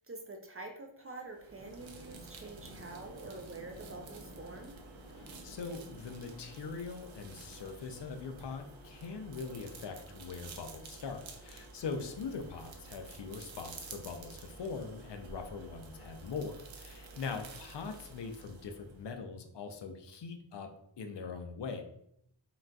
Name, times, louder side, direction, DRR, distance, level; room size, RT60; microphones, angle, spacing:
voice 1, 0.0-4.7 17.1-17.4, right 3 dB, 30° right, 2 dB, 0.4 m, -47 dB
sound 1, 1.1-14.7, equal, 15° left, 1.4 m, -57 dB
sound 2, 1.3-19.1, right 3 dB, 75° right, 0.6 m, -51 dB
voice 2, 5.1-20.7 21.0-21.8, left 5 dB, 65° left, 5 dB, 0.5 m, -42 dB
3.8 x 2.4 x 2.2 m, 0.72 s
wide cardioid pair, 85°, 47 cm